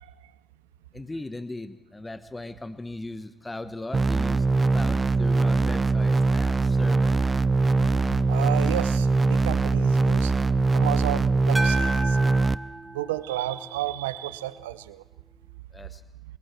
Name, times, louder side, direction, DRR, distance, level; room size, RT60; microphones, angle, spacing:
voice 1, 0.9-7.2 15.7-16.0, left 2 dB, 20° left, 12 dB, 1.1 m, -38 dB
sound 1, 3.9-12.6, right 3 dB, 35° right, 0.6 m, -22 dB
voice 2, 8.3-10.3 10.7-12.2 12.9-15.0, right 13 dB, 85° right, 16 dB, 0.7 m, -31 dB
sound 2, 11.5-13.9, right 1 dB, 20° right, 4.1 m, -32 dB
28.0 x 22.0 x 4.5 m, 0.98 s
hypercardioid pair, 40°, 0 cm